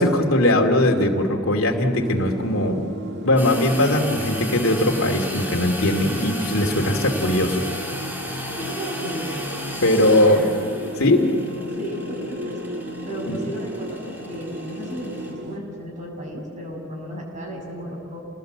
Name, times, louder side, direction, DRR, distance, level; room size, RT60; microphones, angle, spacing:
voice 1, 0.0-2.8 3.2-7.6 9.8-10.4 11.0-11.2 13.3-13.4, left 1 dB, 80° left, 2 dB, 2.6 m, -20 dB
sound 1, 1.9-15.6, right 1 dB, 55° right, 1.7 m, -35 dB
sound 2, 3.4-15.3, equal, 10° right, 6.9 m, -34 dB
voice 2, 8.3-9.4 9.9-10.3 11.8-12.6 13.0-18.2, right 1 dB, 35° right, 0 dB, 7.4 m, -34 dB
29.0 x 20.0 x 8.1 m, 2.8 s
head